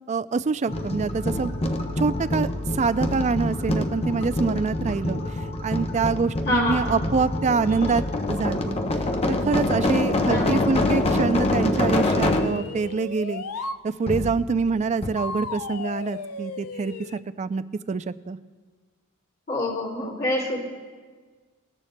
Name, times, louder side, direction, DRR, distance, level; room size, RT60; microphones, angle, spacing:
voice 1, 0.1-1.5 2.0-2.5 2.7-8.8 9.3-13.4 13.8-18.4, right 4 dB, 30° right, 14 dB, 0.3 m, -25 dB
sound 1, 0.7-12.7 14.1-14.8 15.0-15.1, left 1 dB, 25° left, 0.7 m, -25 dB
voice 2, 6.4-7.1 10.3-10.7 19.5-20.6, left 2 dB, 45° left, -5 dB, 3.6 m, -26 dB
sound 2, 12.0-13.8 15.2-17.2, left 4 dB, 75° left, 0.5 m, -35 dB
20.0 x 13.5 x 2.2 m, 1.5 s
head